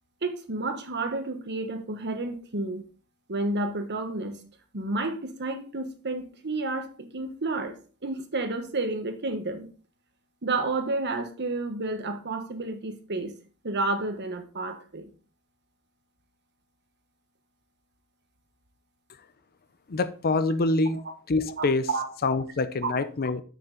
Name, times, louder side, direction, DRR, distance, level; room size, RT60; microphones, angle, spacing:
voice 1, 0.2-2.8 3.3-4.4 4.7-6.9 7.1-7.7 8.0-9.7 10.4-13.3 13.6-15.1 21.6-22.1 22.8-22.9, right 2 dB, 50° right, 7 dB, 1.2 m, -30 dB
voice 2, 19.9-21.0 21.3-21.9 22.2-23.4, left 3 dB, 45° left, 13 dB, 0.6 m, -25 dB
7.0 x 6.4 x 3.8 m, 0.38 s
head